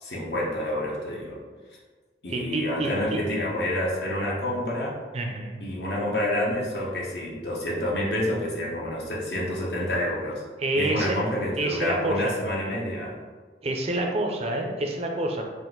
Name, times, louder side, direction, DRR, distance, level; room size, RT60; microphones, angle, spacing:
voice 1, 0.0-1.4 2.2-4.9 5.6-10.4 10.7-13.1, left 1 dB, 65° left, -4 dB, 1.0 m, -28 dB
voice 2, 2.3-3.2 5.1-5.6 10.6-11.2 11.6-12.2 13.6-15.5, right 1 dB, 35° right, 2 dB, 0.5 m, -27 dB
4.1 x 2.5 x 3.9 m, 1.4 s
head